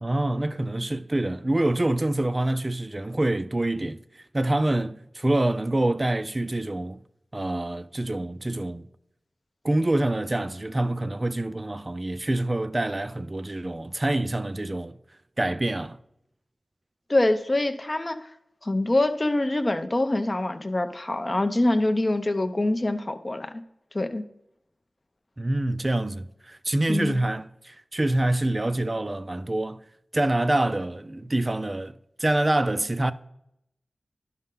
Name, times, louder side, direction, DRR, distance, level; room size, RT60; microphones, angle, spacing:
voice 1, 0.0-7.0 7.3-8.9 9.6-15.0 15.4-16.0 25.4-29.8 30.1-33.1, right 1 dB, 25° right, 0.4 m, -26 dB
voice 2, 17.1-18.3 18.6-23.5 23.9-24.2 26.9-27.2, left 2 dB, 30° left, 0.6 m, -25 dB
11.0 x 5.5 x 3.8 m
wide cardioid pair, 95°, 0 cm